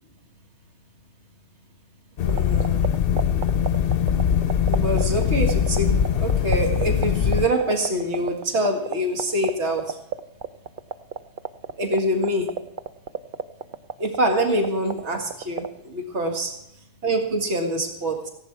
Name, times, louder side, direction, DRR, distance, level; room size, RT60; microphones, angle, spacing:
sound 1, 2.2-7.5, left 8 dB, 60° left, 0.8 m, -22 dB
voice 1, 2.2-2.8 4.7-10.0 11.8-12.5 14.0-16.6 17.0-18.3, right 1 dB, 70° right, 3 dB, 2.1 m, -25 dB
sound 2, 2.3-15.7, right 7 dB, 55° right, 0.7 m, -27 dB
16.0 x 11.0 x 4.6 m, 0.83 s
omnidirectional pair, 1.2 m